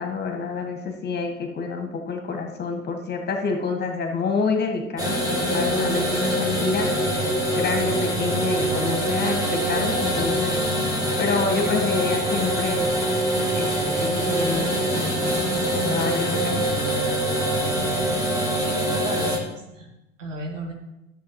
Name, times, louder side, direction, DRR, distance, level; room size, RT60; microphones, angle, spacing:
voice 1, 0.0-7.0 7.5-10.6 11.2-13.0 13.6-16.8, left 4 dB, 25° left, 4 dB, 1.6 m, -28 dB
sound 1, 5.0-19.4, right 1 dB, 10° right, 1.9 m, -24 dB
voice 2, 17.7-18.2 18.6-19.9 20.2-20.7, right 2 dB, 75° right, 2 dB, 1.8 m, -35 dB
13.5 x 7.2 x 3.1 m, 0.93 s
figure-of-eight pair, 75°, 38 cm